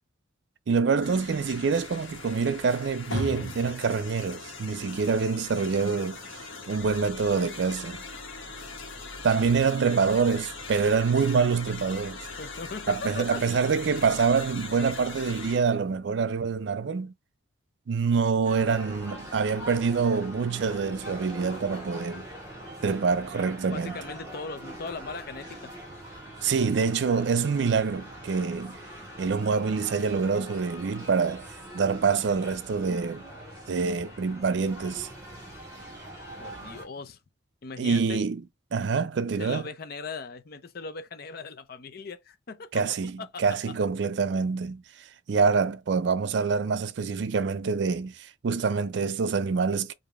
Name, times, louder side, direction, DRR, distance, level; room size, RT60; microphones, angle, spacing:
voice 1, 0.7-8.0 9.2-12.2 12.9-17.1 17.9-22.3 22.8-24.0 26.4-28.8 29.2-31.5 31.7-33.2 33.7-35.1 37.8-38.4 38.7-39.6 42.7-44.8 45.3-49.9, right 5 dB, 60° right, 0.4 m, -26 dB
sound 1, 1.0-15.6, left 3 dB, 75° left, 1.4 m, -40 dB
voice 2, 12.4-13.4 23.7-25.7 36.4-37.2 37.6-38.2 39.4-42.8 43.2-43.7, left 4 dB, 50° left, 0.5 m, -39 dB
sound 2, 18.4-36.9, right 1 dB, 15° right, 1.7 m, -43 dB
4.8 x 2.7 x 2.3 m
head